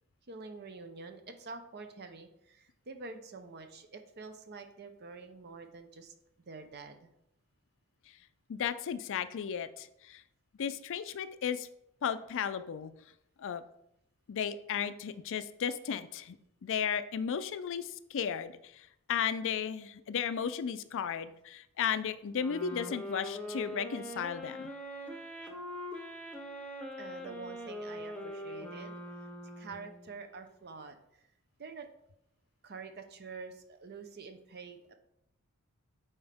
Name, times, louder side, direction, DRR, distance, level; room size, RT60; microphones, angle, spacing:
voice 1, 0.3-6.1 6.5-7.1 27.0-29.0 29.6-31.0 31.6-31.9 32.6-34.9, right 4 dB, 50° right, 7 dB, 0.8 m, -47 dB
voice 2, 8.5-10.2 10.6-11.7 12.0-12.9 13.4-13.6 14.3-16.4 16.6-18.5 19.1-24.7, left 7 dB, 60° left, 12 dB, 0.4 m, -34 dB
sound 1, 22.4-30.1, equal, 5° left, 0.9 m, -42 dB
8.8 x 4.3 x 3.5 m, 0.79 s
head